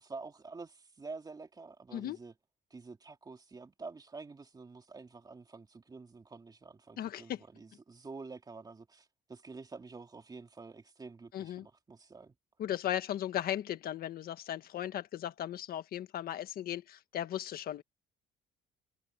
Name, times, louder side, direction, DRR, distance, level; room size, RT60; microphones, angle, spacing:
voice 1, 0.0-2.3 2.7-12.3, right 4 dB, 25° right, 2.7 m, -48 dB
voice 2, 7.0-7.4 11.3-11.7 12.6-17.8, left 11 dB, 65° left, 1.6 m, -37 dB
cardioid pair, 110°, 17 cm